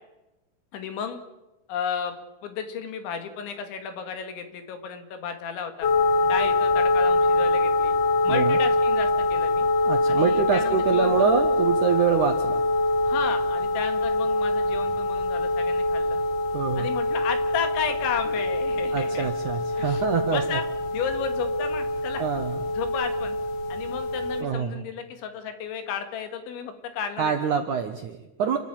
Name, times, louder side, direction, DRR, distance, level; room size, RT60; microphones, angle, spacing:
voice 1, 0.7-1.2 1.7-2.1 2.4-5.9 6.2-7.9 8.2-9.7 10.1-11.4 13.1-16.2 16.8-19.3 19.8-20.0 20.3-20.6 20.9-22.3 22.7-23.4 23.7-27.3, left 7 dB, 75° left, 7 dB, 4.5 m, -33 dB
sound 1, 5.8-24.4, left 2 dB, 50° left, 3.3 m, -24 dB
voice 2, 8.3-8.6 9.9-12.6 16.5-16.9 18.9-20.4 22.2-22.6 24.4-24.8 27.2-28.6, right 7 dB, 70° right, 5 dB, 1.9 m, -25 dB
28.0 x 14.0 x 9.2 m, 1.0 s
omnidirectional pair, 5.4 m